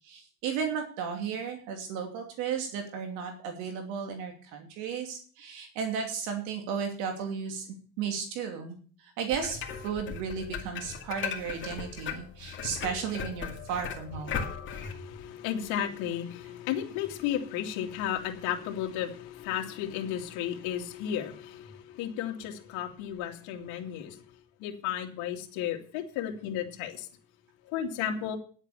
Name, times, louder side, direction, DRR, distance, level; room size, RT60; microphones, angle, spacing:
voice 1, 0.0-14.5, right 6 dB, 75° right, 4 dB, 2.8 m, -34 dB
sound 1, 9.3-14.9, left 7 dB, 40° left, 2.3 m, -37 dB
voice 2, 14.3-24.2 24.6-27.1 27.7-28.4, left 10 dB, 70° left, 3 dB, 2.5 m, -34 dB
10.5 x 8.1 x 6.9 m, 0.42 s
cardioid pair, 130°, 31 cm